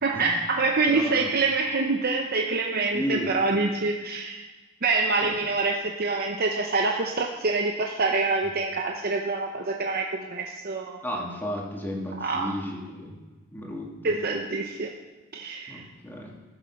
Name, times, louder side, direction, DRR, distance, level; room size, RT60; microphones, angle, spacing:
voice 1, 0.0-4.4 4.8-11.0 12.2-12.5 14.0-14.9 15.3-15.8, right 3 dB, 50° right, 2 dB, 0.8 m, -26 dB
voice 2, 0.9-1.3 2.9-3.7 5.2-5.3 11.0-13.1 13.5-14.1 15.7-16.3, equal, 10° left, -1 dB, 1.9 m, -33 dB
15.0 x 7.4 x 5.8 m, 1.3 s
head